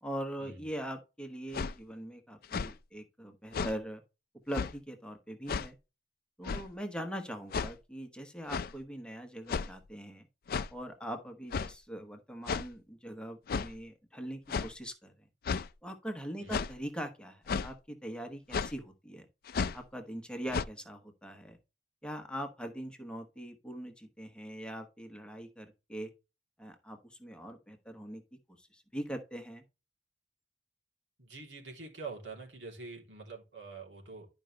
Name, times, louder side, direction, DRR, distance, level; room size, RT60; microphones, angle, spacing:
voice 1, 0.0-4.0 4.5-5.8 6.4-10.3 10.7-15.3 15.8-19.3 19.7-21.6 22.0-26.1 26.6-28.2 28.6-29.6, equal, 5° left, 4 dB, 1.2 m, -42 dB
sound 1, 1.5-1.7 2.4-2.7 3.5-3.7 4.5-4.7 5.5-5.7 6.4-6.7 7.5-7.7 8.5-8.7 9.5-9.8 10.5-10.7 11.5-11.7 12.5-12.7 13.5-13.7 14.5-14.7 15.4-15.7 16.5-16.7 17.5-17.7 18.5-18.7 19.5-19.8 20.5-20.6, left 5 dB, 55° left, 0.4 m, -33 dB
voice 2, 31.2-34.3, right 4 dB, 90° right, -1 dB, 3.2 m, -45 dB
11.0 x 5.2 x 3.3 m, 0.29 s
head